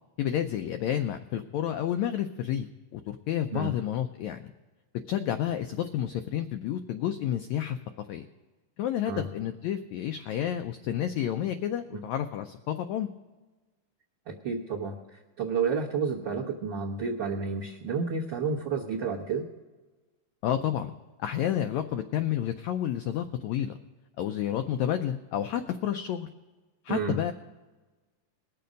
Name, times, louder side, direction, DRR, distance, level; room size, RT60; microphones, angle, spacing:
voice 1, 0.2-2.7 2.9-4.5 5.1-8.2 8.8-13.1 20.4-20.9 21.2-23.7 24.2-26.3 26.8-27.3, left 10 dB, 85° left, 8 dB, 1.6 m, -30 dB
voice 2, 14.3-15.0 15.4-19.5 26.9-27.2, right 5 dB, 60° right, 1 dB, 1.2 m, -30 dB
20.5 x 6.9 x 5.1 m, 1.2 s
omnidirectional pair, 3.8 m